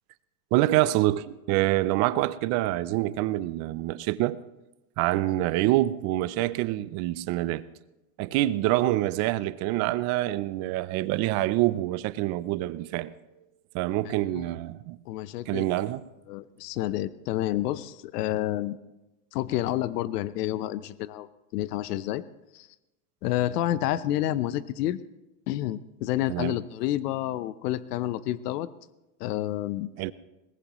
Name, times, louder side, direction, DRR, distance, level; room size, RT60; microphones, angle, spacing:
voice 1, 0.5-4.4 5.0-7.6 8.2-13.1 13.7-15.0 15.5-16.0 26.3-26.6 30.0-30.1, right 16 dB, 35° right, 0.5 m, -26 dB
voice 2, 15.1-15.7 16.3-18.8 19.3-21.3 21.5-22.2 22.5-22.7 23.2-25.0 25.5-28.7 29.2-29.9, left 13 dB, 75° left, 0.9 m, -29 dB
21.5 x 19.5 x 3.1 m
supercardioid pair, 145°, 47 cm